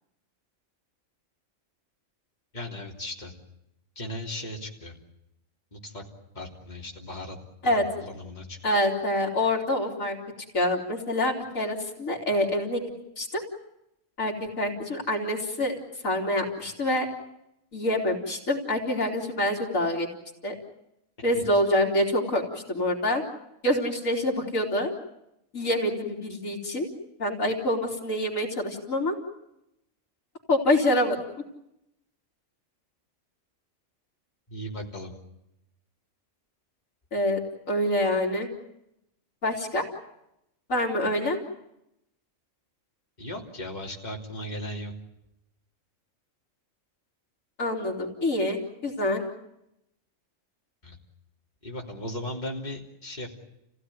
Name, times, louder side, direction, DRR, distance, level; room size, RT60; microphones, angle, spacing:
voice 1, 2.5-3.3 4.0-4.9 5.7-6.0 6.4-7.4 7.6-8.6 21.3-21.4 34.5-35.1 43.2-44.9 50.8-51.0 51.6-53.4, left 1 dB, 35° left, -2 dB, 3.4 m, -37 dB
voice 2, 8.6-10.2 10.5-12.8 13.2-13.4 14.2-15.7 16.0-17.1 17.7-20.1 20.4-20.5 21.2-22.4 22.7-23.2 23.6-24.9 25.5-26.9 27.2-29.2 30.5-31.2 37.1-37.4 37.7-38.5 39.4-39.8 40.7-41.4 47.6-49.2, left 1 dB, 85° left, 0 dB, 3.7 m, -26 dB
30.0 x 16.5 x 9.5 m, 0.86 s
omnidirectional pair, 1.4 m